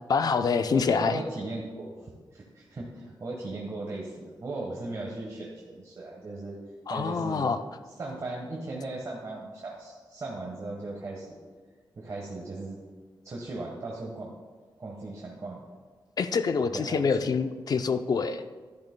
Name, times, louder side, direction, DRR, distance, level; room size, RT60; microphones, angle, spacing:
voice 1, 0.1-1.2 6.9-7.6 16.2-18.5, left 5 dB, 50° left, 10 dB, 0.5 m, -26 dB
voice 2, 0.7-1.9 2.3-6.6 6.9-7.5 8.0-11.4 12.0-12.8 13.2-14.3 14.8-15.7 16.7-17.3, right 2 dB, 40° right, -3 dB, 1.3 m, -37 dB
12.0 x 10.5 x 2.2 m, 1.5 s
wide cardioid pair, 125°, 8 cm